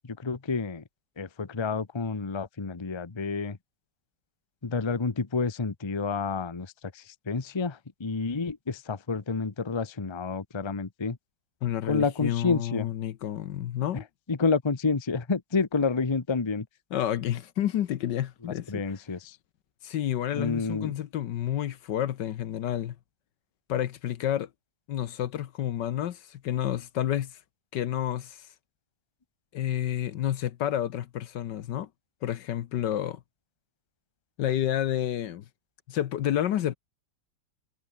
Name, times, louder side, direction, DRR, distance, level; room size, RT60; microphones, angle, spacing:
voice 1, 0.0-0.8 1.2-3.6 4.6-11.2 11.9-12.9 13.9-16.7 18.4-19.4 20.3-20.9, left 4 dB, 20° left, 0.8 m, -29 dB
voice 2, 11.6-14.1 16.9-18.8 19.8-22.9 23.7-24.5 24.9-27.3 27.7-28.5 29.5-31.9 32.2-33.2 34.4-35.4 35.9-36.8, left 11 dB, 70° left, 1.5 m, -30 dB
omnidirectional pair, 2.1 m